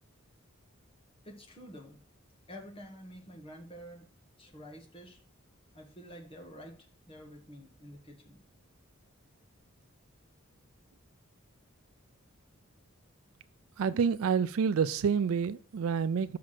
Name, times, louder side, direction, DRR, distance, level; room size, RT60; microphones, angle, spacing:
voice 1, 1.2-2.0 2.5-4.0 4.4-5.2 5.7-8.4, equal, 25° left, 1.6 m, -49 dB
voice 2, 13.8-16.4, right 6 dB, 80° right, 0.4 m, -28 dB
6.1 x 5.8 x 6.4 m
head